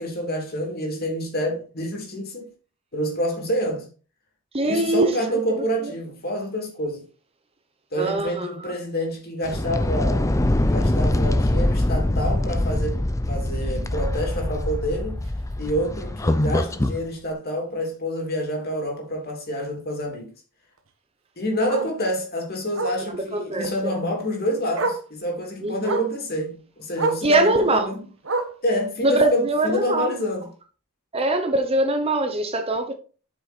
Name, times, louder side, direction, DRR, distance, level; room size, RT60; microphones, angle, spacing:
voice 1, 0.0-2.5 2.9-3.9 4.6-7.0 7.9-10.3 10.7-13.0 13.3-15.2 15.6-20.3 21.4-28.0 28.6-30.5, equal, 45° left, 3.1 m, -27 dB
voice 2, 4.5-5.4 5.8-5.9 8.0-8.7 23.3-24.0 25.6-26.0 27.2-27.9 29.0-30.1 31.1-32.9, right 2 dB, 25° right, 0.9 m, -22 dB
sound 1, 9.4-17.0, left 1 dB, 15° left, 0.5 m, -23 dB
Bark, 15.2-15.4 15.8-15.9 16.3-16.4 16.7-16.8 18.2-18.3 20.8-20.9 21.7-22.0 22.7-23.0 24.2-24.3 24.7-25.1 25.8-26.2 26.9-27.3 28.2-28.7 29.7-29.8, right 3 dB, 65° right, 1.3 m, -27 dB
8.1 x 6.2 x 4.3 m
head